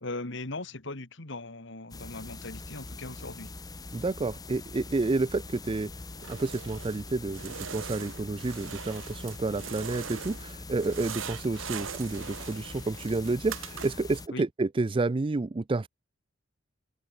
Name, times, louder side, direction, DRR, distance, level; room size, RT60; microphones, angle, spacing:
voice 1, 0.0-3.5 14.3-14.4, left 2 dB, 65° left, 2.2 m, -39 dB
sound 1, 1.9-14.3, left 3 dB, 20° left, 0.9 m, -43 dB
voice 2, 3.9-5.9 6.3-15.9, right 3 dB, 25° right, 0.4 m, -30 dB
sound 2, 6.2-7.0 7.3-10.5 10.8-14.2, right 7 dB, 75° right, 1.3 m, -41 dB
head